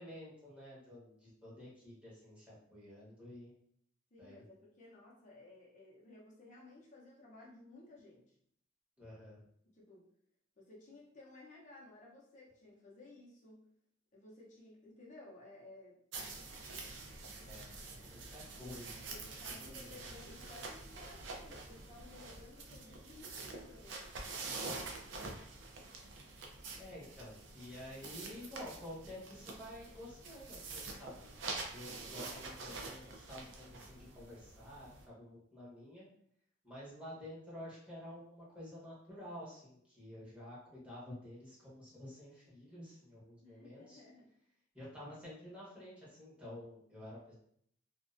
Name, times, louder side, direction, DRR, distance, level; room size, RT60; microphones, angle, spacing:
voice 1, 0.0-3.5 4.2-4.4 9.0-9.4 17.4-19.1 19.4-20.0 24.6-24.7 26.8-31.3 31.7-36.0 36.6-44.0 44.7-47.3, left 1 dB, 5° right, -9 dB, 0.9 m, -50 dB
voice 2, 4.1-8.4 9.6-10.1 10.6-13.6 14.1-16.4 19.1-24.1 43.4-44.3, left 2 dB, 40° left, -4 dB, 0.6 m, -57 dB
sound 1, 16.1-35.1, right 3 dB, 65° right, 0.4 m, -47 dB
2.4 x 2.1 x 2.4 m, 0.67 s
head